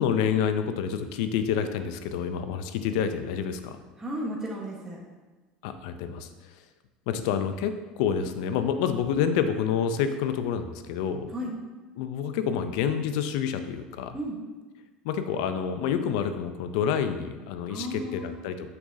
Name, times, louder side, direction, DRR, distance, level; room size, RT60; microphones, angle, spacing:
voice 1, 0.0-3.8 5.6-6.3 7.1-11.3 12.0-14.2 15.0-18.7, left 7 dB, 75° left, 9 dB, 0.5 m, -28 dB
voice 2, 4.0-5.0 11.3-11.5 14.1-14.4 17.7-18.3, equal, 15° right, -4 dB, 1.2 m, -34 dB
6.2 x 6.0 x 2.7 m, 1.3 s
supercardioid pair, 100°, 4 cm